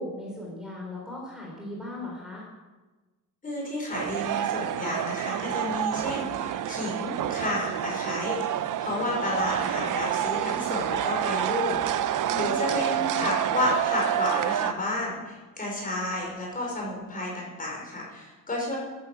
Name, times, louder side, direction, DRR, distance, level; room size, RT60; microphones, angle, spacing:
voice 1, 0.0-2.5 12.2-12.7, left 1 dB, ahead, -4 dB, 3.5 m, -38 dB
voice 2, 3.4-12.1 12.3-18.8, left 2 dB, 25° left, -2 dB, 5.0 m, -31 dB
sound 1, 3.9-14.7, right 11 dB, 70° right, 0.7 m, -28 dB
13.5 x 12.5 x 7.5 m, 1.2 s
wide cardioid pair, 175°, 33 cm